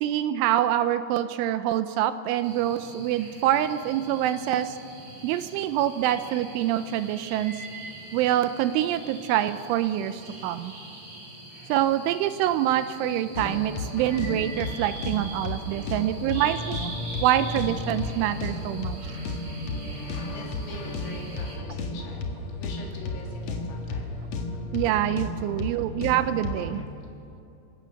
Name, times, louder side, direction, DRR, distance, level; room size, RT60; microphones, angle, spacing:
voice 1, 0.0-4.8 5.2-7.6 8.1-10.7 11.7-16.9 17.2-19.0 24.7-26.8, right 12 dB, 80° right, 11 dB, 2.9 m, -25 dB
sound 1, 2.4-21.6, right 2 dB, 65° right, 8.0 m, -43 dB
sound 2, 13.3-26.8, left 2 dB, 60° left, 1.8 m, -33 dB
voice 2, 14.6-14.9 15.4-16.4 17.0-17.3 18.0-24.8 25.5-26.1 27.0-27.1, left 3 dB, 85° left, 0 dB, 6.0 m, -47 dB
28.0 x 17.0 x 7.1 m, 2.8 s
omnidirectional pair, 5.9 m